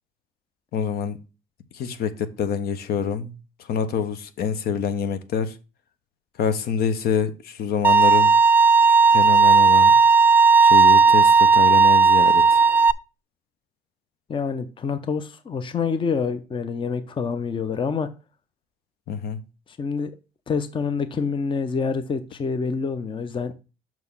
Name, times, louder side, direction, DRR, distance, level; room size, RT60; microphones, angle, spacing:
voice 1, 0.7-1.2 1.7-3.3 3.7-5.6 6.4-8.3 9.1-10.0 10.6-12.6 19.1-19.4, left 7 dB, 65° left, 0.9 m, -26 dB
Bowed string instrument, 7.8-12.9, right 5 dB, 10° right, 0.3 m, -14 dB
voice 2, 14.3-18.1 19.7-20.1 20.5-23.5, left 5 dB, 30° left, 0.7 m, -27 dB
6.0 x 4.6 x 5.4 m
cardioid pair, 110°, 17 cm